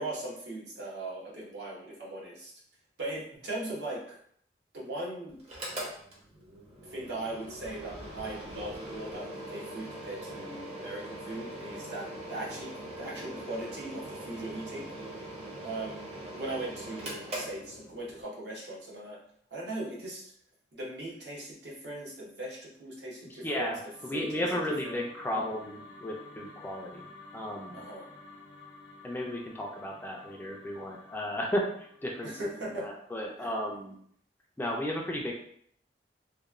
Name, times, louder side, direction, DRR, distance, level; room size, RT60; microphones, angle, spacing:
voice 1, 0.0-2.5 3.0-4.2 4.7-5.4 5.7-5.8 6.8-14.9 15.6-19.2 19.5-20.2 20.7-23.7 24.1-24.4 24.8-25.0 27.7-28.1 32.2-32.9 33.4-33.5, right 2 dB, 70° right, -4 dB, 0.9 m, -39 dB
Mechanical fan, 5.4-18.2, right 1 dB, 40° right, 0.7 m, -42 dB
sound 1, 23.4-33.7, left 3 dB, 85° left, 0.6 m, -52 dB
voice 2, 23.4-27.1 27.3-27.8 29.0-34.0 34.6-35.3, left 1 dB, 10° left, -1 dB, 0.3 m, -34 dB
2.9 x 2.1 x 2.4 m, 0.64 s
head